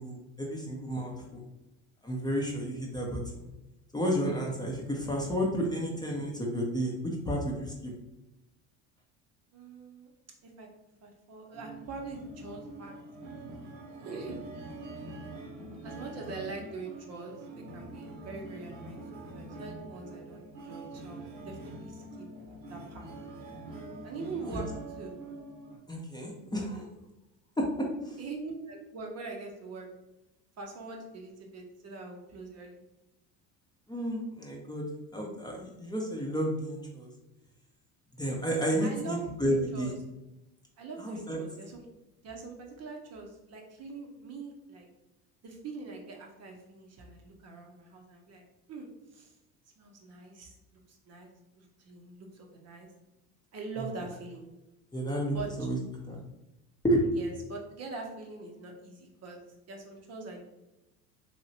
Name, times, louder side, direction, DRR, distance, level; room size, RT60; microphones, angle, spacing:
voice 1, 0.0-1.4 2.0-3.2 3.9-6.9 7.2-7.7 24.5-24.6 25.9-26.9 27.6-27.7 28.1-28.2 33.9-34.9 35.1-37.1 38.2-39.9 41.0-41.4 54.9-55.8 56.1-56.2 56.8-57.1, equal, 10° left, -2 dB, 0.7 m, -31 dB
voice 2, 9.5-10.1 10.4-10.7 11.0-13.0 14.0-14.4 15.8-22.3 22.7-23.1 24.0-25.1 28.2-29.9 30.6-32.8 38.8-40.0 40.8-41.9 42.2-44.9 45.4-48.4 48.7-49.4 49.8-50.5 50.9-51.3 51.6-52.9 53.5-54.5 55.3-55.7 57.1-59.4 59.7-60.4, right 3 dB, 40° right, 1 dB, 0.7 m, -43 dB
sound 1, 11.5-25.8, right 2 dB, 70° right, 0.9 m, -45 dB
3.1 x 2.8 x 2.7 m, 0.97 s
hypercardioid pair, 75°, 41 cm